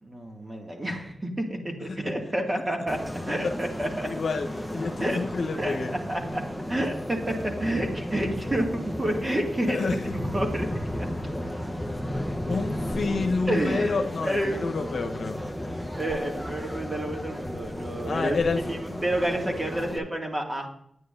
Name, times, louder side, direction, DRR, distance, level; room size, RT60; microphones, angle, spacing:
voice 1, 0.0-3.0 3.3-4.1 5.0-5.2 5.6-11.1 13.5-14.6 15.9-20.7, right 1 dB, 25° right, 1 dB, 2.3 m, -29 dB
sound 1, 2.9-20.0, left 1 dB, ahead, 1.0 m, -34 dB
voice 2, 4.1-4.5 4.7-5.9 9.7-10.1 12.5-15.4 18.0-18.8, left 4 dB, 70° left, 4 dB, 1.0 m, -29 dB
9.6 x 9.5 x 2.7 m, 0.67 s
cardioid pair, 70°, 0 cm